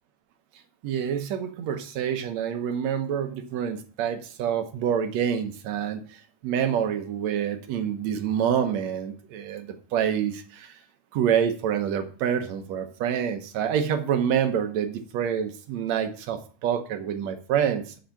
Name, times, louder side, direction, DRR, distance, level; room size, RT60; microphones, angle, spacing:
voice 1, 0.8-6.0 6.4-10.8 11.1-18.0, right 8 dB, 65° right, 8 dB, 1.9 m, -27 dB
7.8 x 6.4 x 5.8 m, 0.41 s
omnidirectional pair, 3.9 m